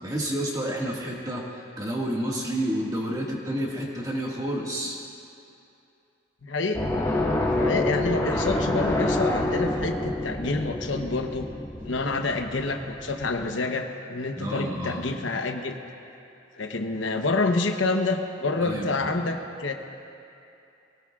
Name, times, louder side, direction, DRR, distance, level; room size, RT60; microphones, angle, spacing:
voice 1, 0.0-5.0 14.4-15.1 18.6-19.1, right 1 dB, 20° right, -3 dB, 1.9 m, -30 dB
voice 2, 6.4-6.8 7.5-11.5 11.8-15.8 16.6-19.7, left 3 dB, 75° left, 4 dB, 0.9 m, -28 dB
sound 1, 6.7-13.5, left 1 dB, 20° left, 1.6 m, -27 dB
24.0 x 17.0 x 2.4 m, 2.6 s
head